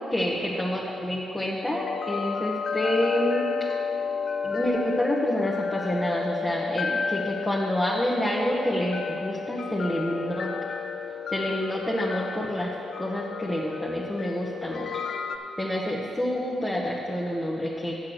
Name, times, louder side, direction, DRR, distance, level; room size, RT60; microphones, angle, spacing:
voice 1, 0.1-3.7 4.4-10.5 11.3-12.7 13.0-14.9 15.6-18.0, equal, 10° left, -4 dB, 1.3 m, -28 dB
sound 1, 1.7-15.4, left 6 dB, 65° left, 0.6 m, -32 dB
8.4 x 7.3 x 6.4 m, 2.8 s
supercardioid pair, 60°, 0 cm